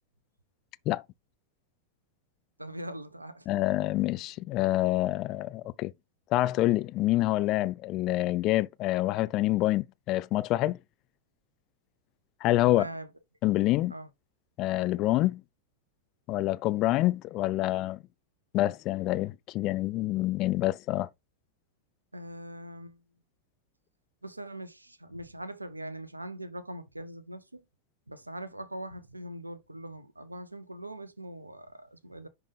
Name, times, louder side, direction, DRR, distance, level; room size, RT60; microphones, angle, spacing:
voice 1, 2.6-3.5 12.6-13.1 13.9-14.1 22.1-23.0 24.2-27.6 28.1-32.3, right 1 dB, 85° right, 0.7 m, -42 dB
voice 2, 3.5-5.9 6.3-10.8 12.4-12.8 13.4-13.9 14.6-15.4 16.3-18.0 18.5-21.1, left 16 dB, 40° left, 0.3 m, -27 dB
10.5 x 3.5 x 3.3 m
figure-of-eight pair, 90°, 0 cm